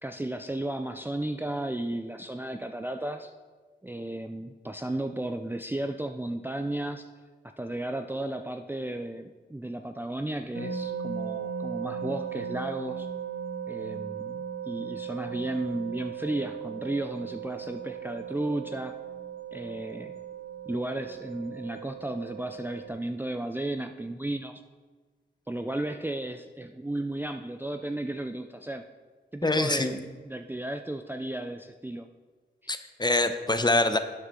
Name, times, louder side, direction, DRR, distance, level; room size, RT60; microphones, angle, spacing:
voice 1, 0.0-3.3 3.8-7.1 7.4-13.1 13.7-18.9 19.5-20.1 20.7-24.6 25.5-28.8 29.3-32.1 32.6-32.7, right 1 dB, 10° right, 6 dB, 0.5 m, -34 dB
sound 1, 10.5-22.9, right 7 dB, 75° right, 2.0 m, -37 dB
voice 2, 29.4-30.0 32.7-34.0, left 2 dB, 25° left, 9 dB, 0.7 m, -24 dB
12.0 x 8.0 x 3.8 m, 1.4 s
wide cardioid pair, 75°, 19 cm